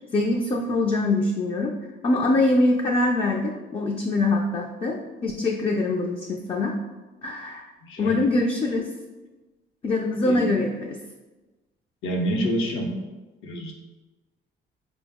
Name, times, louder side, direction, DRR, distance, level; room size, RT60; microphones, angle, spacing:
voice 1, 0.1-1.7 2.0-6.8 7.2-7.7 8.0-8.9 9.8-11.0, left 2 dB, 30° left, 1 dB, 0.3 m, -23 dB
voice 2, 7.8-8.1 10.2-10.5 12.0-12.9 13.4-13.7, equal, 85° left, 1 dB, 0.7 m, -27 dB
4.6 x 2.0 x 3.4 m, 1.2 s
cardioid pair, 90°, 20 cm